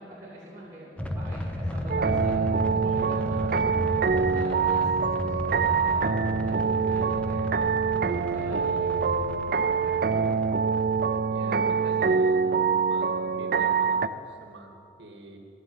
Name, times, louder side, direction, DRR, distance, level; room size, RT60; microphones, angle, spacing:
voice 1, 0.0-5.3 5.6-7.4 7.9-10.2 11.4-12.2, right 1 dB, 20° right, -9 dB, 2.6 m, -44 dB
sound 1, 1.0-11.2, left 1 dB, 5° left, 0.8 m, -34 dB
sound 2, 1.9-14.1, right 5 dB, 55° right, 0.5 m, -25 dB
voice 2, 3.1-3.9 5.6-6.0 11.2-13.1 13.4-15.4, right 1 dB, 75° right, 3 dB, 1.9 m, -47 dB
14.0 x 8.0 x 8.8 m, 2.5 s
head